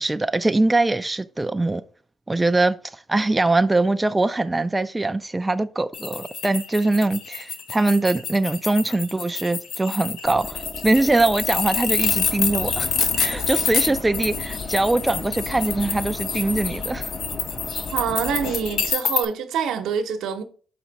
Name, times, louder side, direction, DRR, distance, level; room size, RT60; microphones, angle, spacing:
voice 1, 0.0-1.8 2.3-17.1, right 2 dB, 15° right, 0.3 m, -22 dB
sound 1, 5.9-19.2, left 6 dB, 75° left, 0.8 m, -27 dB
sound 2, 10.2-18.9, left 1 dB, ahead, 0.7 m, -38 dB
sound 3, 12.0-18.5, left 5 dB, 40° left, 0.5 m, -36 dB
voice 2, 17.9-20.4, right 7 dB, 85° right, 0.9 m, -26 dB
5.9 x 4.3 x 4.0 m
cardioid pair, 90°, 0 cm